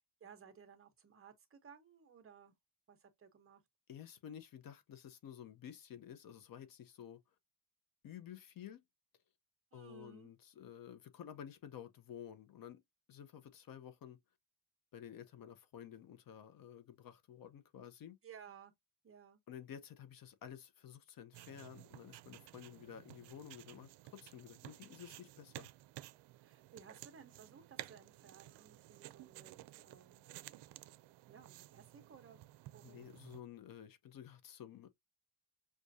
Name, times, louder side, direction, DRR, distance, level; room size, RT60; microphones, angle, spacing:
voice 1, 0.2-2.5 2.9-3.6 9.7-10.3 18.2-18.7 19.0-19.4 26.4-30.3 31.3-32.4 32.7-33.1, right 7 dB, 35° right, 1.0 m, -58 dB
voice 2, 3.9-7.2 8.0-8.8 9.7-12.8 13.1-14.2 14.9-18.2 19.5-25.7 32.8-34.9, left 9 dB, 55° left, 0.8 m, -52 dB
sound 1, 21.3-33.4, right 16 dB, 90° right, 0.5 m, -54 dB
6.4 x 2.5 x 2.7 m
cardioid pair, 150°, 40 cm